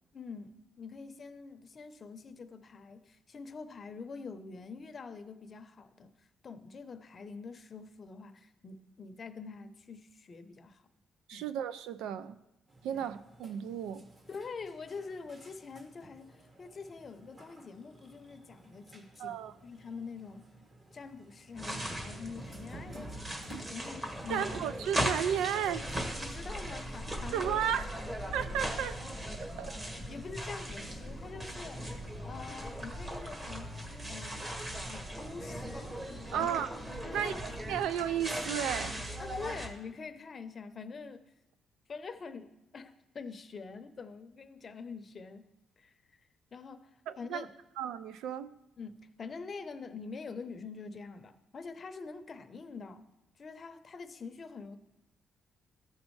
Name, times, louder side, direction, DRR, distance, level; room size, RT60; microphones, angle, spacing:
voice 1, 0.1-10.8 11.3-11.5 12.9-13.1 14.3-19.4 19.6-20.5 20.9-23.2 23.7-24.6 26.1-28.1 30.1-31.9 32.2-33.7 34.1-34.5 34.9-36.0 36.3-36.6 37.0-37.4 39.2-41.2 41.9-45.5 45.8-45.9 46.5-47.5 48.8-53.1 53.4-54.8, left 4 dB, 40° left, 0.7 m, -45 dB
voice 2, 11.3-12.4 12.8-14.1 19.2-19.5 24.3-25.8 27.3-27.8 28.3-29.0 29.6-29.7 36.3-36.7 37.1-39.0 47.1-47.5 47.8-48.5, right 9 dB, 90° right, 0.4 m, -33 dB
Burping eructation, 12.7-27.1, right 1 dB, 40° right, 2.0 m, -60 dB
sound 1, 21.5-39.7, right 1 dB, 25° right, 1.5 m, -38 dB
14.0 x 5.2 x 3.2 m
cardioid pair, 90°, 0 cm